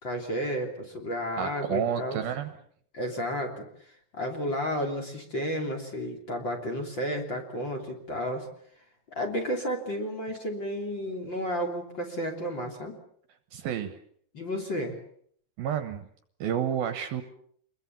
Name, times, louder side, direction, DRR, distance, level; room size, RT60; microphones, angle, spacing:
voice 1, 0.0-2.2 2.9-3.7 4.1-8.5 9.1-13.0 14.3-15.0, equal, 30° left, 4 dB, 3.2 m, -32 dB
voice 2, 1.4-2.5 13.5-14.0 15.6-16.1 16.4-17.2, right 9 dB, 70° right, 9 dB, 2.7 m, -30 dB
27.0 x 21.5 x 7.1 m, 0.63 s
omnidirectional pair, 5.0 m